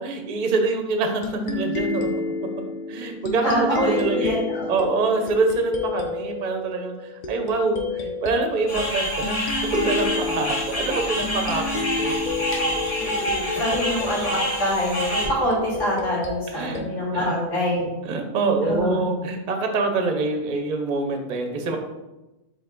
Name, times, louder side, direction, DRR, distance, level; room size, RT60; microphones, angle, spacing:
voice 1, 0.0-2.1 2.9-12.1 16.5-16.8 17.1-17.3 18.1-21.8, right 3 dB, 50° right, 5 dB, 0.6 m, -25 dB
sound 1, 1.2-18.4, left 3 dB, 65° left, 0.4 m, -31 dB
voice 2, 3.4-4.7 12.9-18.0 18.6-19.0, equal, 80° left, -6 dB, 2.1 m, -25 dB
sound 2, 8.7-15.3, equal, 30° left, 1.1 m, -27 dB
4.6 x 3.1 x 3.7 m, 1.0 s
omnidirectional pair, 1.3 m